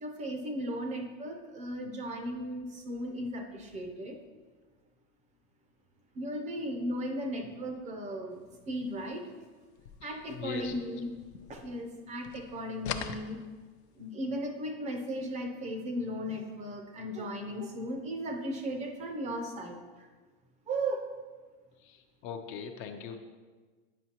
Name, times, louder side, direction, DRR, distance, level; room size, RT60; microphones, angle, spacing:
voice 1, 0.0-4.2 6.2-9.3 10.0-11.1 11.5-13.4 14.0-20.1 20.7-21.0, equal, 20° right, 4 dB, 0.5 m, -36 dB
sound 1, 9.7-12.0 12.2-14.0, left 8 dB, 90° left, 0.6 m, -42 dB
voice 2, 10.0-10.7 21.8-23.2, left 7 dB, 40° left, 6 dB, 0.5 m, -40 dB
9.2 x 5.3 x 2.8 m, 1.4 s
supercardioid pair, 150°, 31 cm